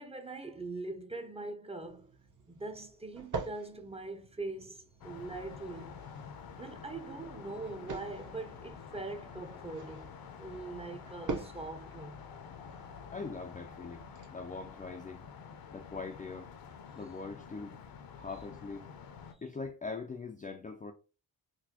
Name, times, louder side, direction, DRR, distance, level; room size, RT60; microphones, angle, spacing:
voice 1, 0.0-2.1 2.5-6.0 6.6-10.1 10.4-12.2, right 3 dB, 15° right, 0.6 m, -42 dB
sound 1, 1.9-14.3, right 4 dB, 50° right, 1.0 m, -46 dB
sound 2, 5.0-19.3, left 6 dB, 60° left, 0.7 m, -49 dB
voice 2, 13.1-15.2 15.7-16.5 16.9-17.8 18.2-18.9 19.4-20.9, left 4 dB, 20° left, 0.4 m, -42 dB
4.1 x 2.2 x 2.8 m
cardioid pair, 70°, 40 cm